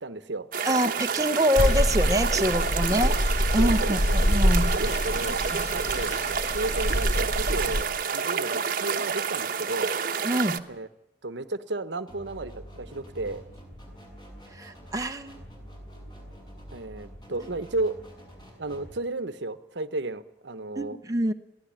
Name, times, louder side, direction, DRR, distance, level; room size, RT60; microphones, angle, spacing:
voice 1, 0.0-0.5 2.9-3.0 3.6-4.2 4.7-5.4 5.7-6.2 6.5-9.9 10.7-10.9 11.2-13.4 16.7-18.0 18.6-21.0, right 2 dB, 75° right, 12 dB, 1.1 m, -33 dB
sound 1, 0.5-10.6, right 6 dB, 50° right, 1.1 m, -29 dB
voice 2, 0.6-3.1 3.5-4.7 5.5-5.6 10.2-10.6 14.6-15.4 20.8-21.3, equal, 20° right, 5 dB, 1.0 m, -25 dB
sound 2, 1.6-7.8, equal, 40° left, 1.0 m, -25 dB
sound 3, 12.1-18.9, equal, 25° left, 6.6 m, -46 dB
22.5 x 16.0 x 10.0 m, 0.86 s
head